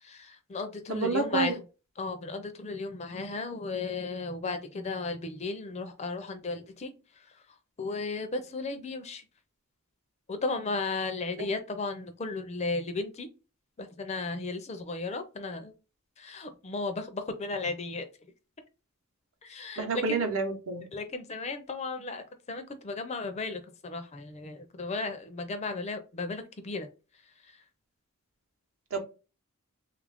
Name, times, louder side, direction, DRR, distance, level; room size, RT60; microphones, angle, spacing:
voice 1, 0.0-1.6 2.0-6.9 7.8-9.2 10.3-13.3 13.8-15.7 16.2-18.1 19.4-20.3 20.9-26.9, left 3 dB, 30° left, 0.4 m, -35 dB
voice 2, 0.9-1.5 19.8-20.8 28.9-29.0, right 4 dB, 65° right, 0.8 m, -28 dB
3.3 x 2.4 x 3.4 m
head